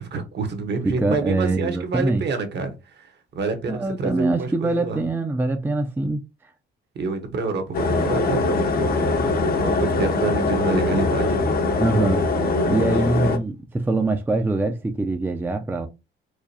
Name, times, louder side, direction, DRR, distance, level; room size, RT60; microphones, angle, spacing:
voice 1, 0.0-5.0 6.9-11.8 12.6-12.9 13.2-13.4, right 4 dB, 60° right, 1.1 m, -28 dB
voice 2, 0.8-2.2 3.7-6.2 11.8-12.3 12.7-15.9, right 2 dB, 10° right, 0.4 m, -23 dB
sound 1, 7.7-13.4, left 3 dB, 50° left, 0.7 m, -22 dB
4.7 x 2.2 x 2.7 m
cardioid pair, 90°, 20 cm